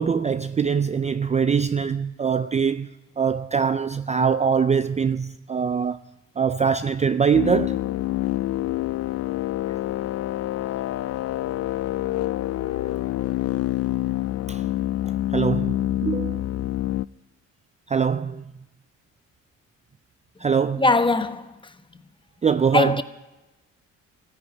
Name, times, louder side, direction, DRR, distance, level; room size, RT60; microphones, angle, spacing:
voice 1, 0.0-2.9 3.2-6.0 6.4-7.8 14.5-14.6 15.3-16.4 17.9-18.4 20.4-20.8 22.4-23.0, right 6 dB, 25° right, 0.4 m, -23 dB
sound 1, 7.3-17.0, left 14 dB, 55° left, 0.4 m, -26 dB
voice 2, 20.7-21.7 22.7-23.0, left 2 dB, 15° left, 1.0 m, -21 dB
14.0 x 10.5 x 9.3 m
cardioid pair, 90°, 30 cm